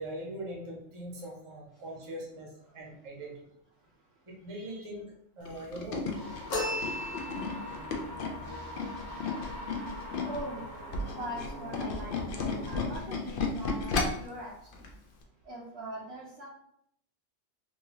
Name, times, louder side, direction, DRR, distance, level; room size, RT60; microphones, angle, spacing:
voice 1, 0.0-3.3 4.3-5.1 5.4-6.0 9.3-9.4, right 1 dB, 30° right, -2 dB, 0.7 m, -41 dB
Tools, 5.4-10.4 10.8-14.3 14.7-14.9 15.2-15.3, left 4 dB, 60° left, 0.6 m, -33 dB
sound 1, 6.1-12.7, left 1 dB, 80° right, 1.4 m, -42 dB
sound 2, 6.5-7.8, left 1 dB, 80° left, 1.2 m, -34 dB
voice 2, 10.3-10.7 11.1-12.2 12.6-14.8 15.4-16.5, right 1 dB, 60° right, -3 dB, 0.8 m, -41 dB
3.8 x 2.5 x 2.9 m, 0.71 s
omnidirectional pair, 1.3 m